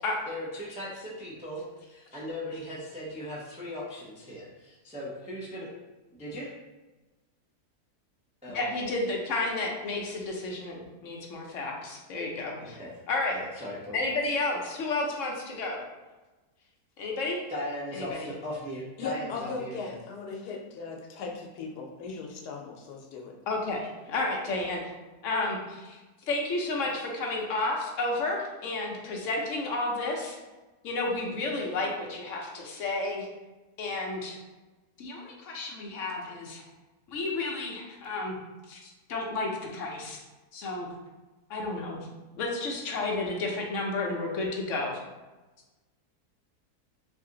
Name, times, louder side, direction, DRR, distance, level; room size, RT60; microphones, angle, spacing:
voice 1, 0.3-5.7 6.1-6.5 8.4-8.6 12.6-12.9 13.3-14.0 17.5-20.0, equal, 10° right, -6 dB, 0.3 m, -38 dB
voice 2, 8.5-12.8 13.1-13.4 13.9-15.8 17.0-17.4 17.9-18.3 23.5-24.8 25.2-26.0 26.3-30.4 30.8-33.3 33.8-34.4 35.0-36.6 37.1-38.3 38.7-40.2 40.5-40.9 41.5-42.0 42.4-44.9, left 2 dB, 60° left, 0 dB, 0.9 m, -31 dB
voice 3, 19.0-23.4 27.4-27.5 29.0-29.2, left 4 dB, 85° left, 1 dB, 1.2 m, -38 dB
3.2 x 2.7 x 3.8 m, 1.2 s
omnidirectional pair, 1.7 m